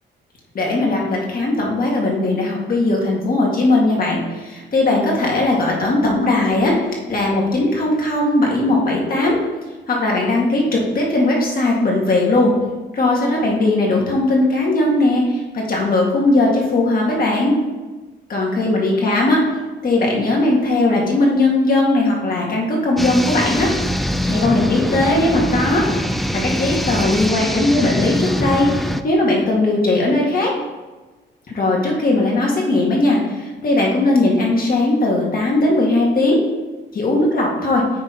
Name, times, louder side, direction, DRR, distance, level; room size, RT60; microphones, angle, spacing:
voice 1, 0.5-6.7 7.1-9.4 9.9-12.5 12.9-17.6 18.3-19.4 19.8-23.7 24.2-25.8 26.4-30.5 31.5-36.4 36.9-37.8, left 2 dB, 45° left, -2 dB, 2.0 m, -18 dB
sound 1, 23.0-29.0, equal, ahead, 0.3 m, -23 dB
9.4 x 3.2 x 4.3 m, 1.2 s
cardioid pair, 90°, 20 cm